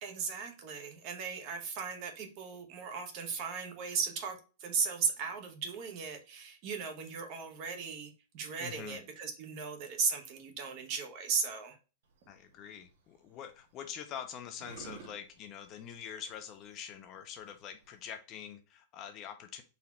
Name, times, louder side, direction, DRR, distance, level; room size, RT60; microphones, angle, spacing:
voice 1, 0.0-11.8, right 5 dB, 30° right, 5 dB, 0.9 m, -36 dB
voice 2, 8.6-9.0 12.3-19.6, left 8 dB, 25° left, 7 dB, 0.4 m, -45 dB
sound 1, 12.0-18.1, right 5 dB, 75° right, 1.3 m, -55 dB
4.0 x 2.8 x 4.2 m, 0.33 s
supercardioid pair, 180°, 0 cm